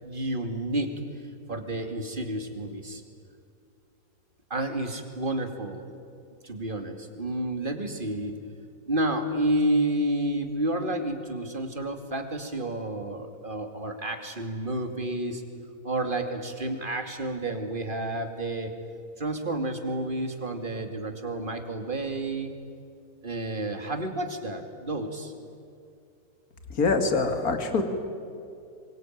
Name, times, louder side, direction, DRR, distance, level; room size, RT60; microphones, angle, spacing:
voice 1, 0.0-0.9 1.5-3.0 4.5-5.9 6.4-8.3 8.9-15.4 15.8-18.7 19.2-22.5 23.2-25.3, right 1 dB, 25° right, 6 dB, 2.6 m, -30 dB
voice 2, 26.7-27.8, left 4 dB, 50° left, 6 dB, 2.9 m, -24 dB
26.5 x 24.0 x 9.3 m, 2.5 s
omnidirectional pair, 2.0 m